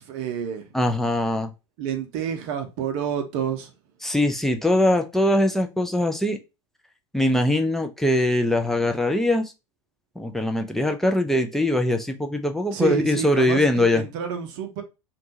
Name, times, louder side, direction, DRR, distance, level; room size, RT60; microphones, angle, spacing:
voice 1, 0.0-0.7 1.8-3.7 12.7-14.8, right 8 dB, 50° right, 0.6 m, -29 dB
voice 2, 0.7-1.5 4.0-6.4 7.1-9.5 10.2-14.0, left 1 dB, ahead, 0.3 m, -22 dB
2.6 x 2.2 x 2.6 m
figure-of-eight pair, 80°, 16 cm